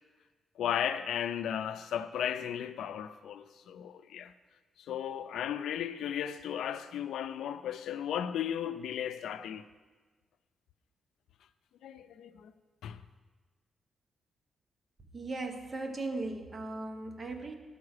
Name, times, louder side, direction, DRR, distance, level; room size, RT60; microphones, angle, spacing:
voice 1, 0.6-4.3 4.8-9.7 11.8-12.5 12.8-13.0, left 9 dB, 90° left, 0.4 m, -35 dB
voice 2, 15.1-17.5, right 2 dB, 25° right, 1.0 m, -37 dB
12.5 x 4.8 x 6.4 m
wide cardioid pair, 155°, 0 cm